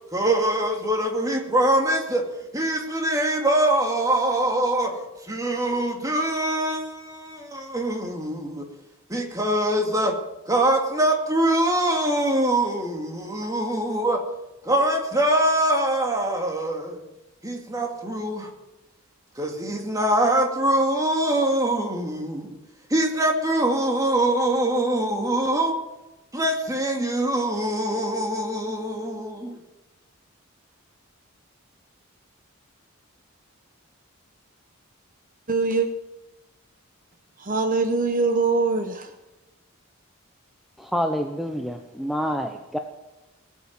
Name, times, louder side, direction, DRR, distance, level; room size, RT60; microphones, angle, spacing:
voice 1, 0.1-2.2 2.5-5.0 5.3-8.7 9.1-10.2 10.5-14.2 14.6-17.0 17.4-18.5 19.4-22.6 22.9-25.8 26.3-29.6, right 1 dB, 15° right, 2 dB, 2.4 m, -23 dB
voice 2, 35.5-35.9 37.4-39.1, right 4 dB, 40° right, 7 dB, 1.1 m, -23 dB
voice 3, 40.8-42.8, equal, ahead, 3 dB, 0.8 m, -27 dB
20.0 x 8.5 x 7.7 m, 1.0 s
head